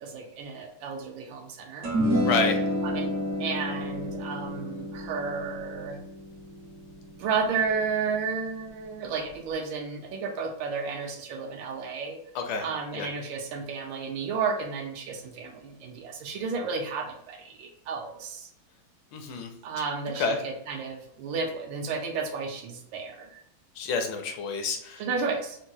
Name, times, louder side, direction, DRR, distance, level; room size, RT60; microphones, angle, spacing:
voice 1, 0.0-1.9 2.8-3.1 3.4-6.0 7.2-12.2 12.6-18.5 19.6-23.4 25.0-25.6, right 5 dB, 75° right, 3 dB, 1.2 m, -32 dB
sound 1, 1.8-8.4, equal, 55° right, 0.9 m, -30 dB
voice 2, 2.2-2.6 12.3-12.7 12.9-13.1 19.1-19.5 20.2-20.4 23.8-25.0, left 4 dB, 75° left, 4 dB, 1.3 m, -28 dB
3.8 x 2.2 x 2.6 m, 0.75 s
omnidirectional pair, 2.2 m